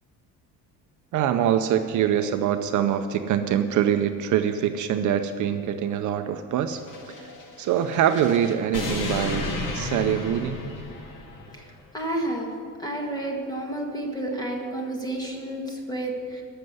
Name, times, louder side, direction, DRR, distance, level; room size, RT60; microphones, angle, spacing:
voice 1, 1.1-6.8 7.2-7.3 7.6-10.6, right 9 dB, 55° right, 8 dB, 0.6 m, -24 dB
sound 1, 6.8-11.5, left 2 dB, 60° left, 2.0 m, -33 dB
voice 2, 11.9-12.5 12.8-16.4, right 1 dB, 10° left, 0 dB, 1.8 m, -30 dB
13.5 x 6.7 x 9.6 m, 2.5 s
cardioid pair, 165°, 36 cm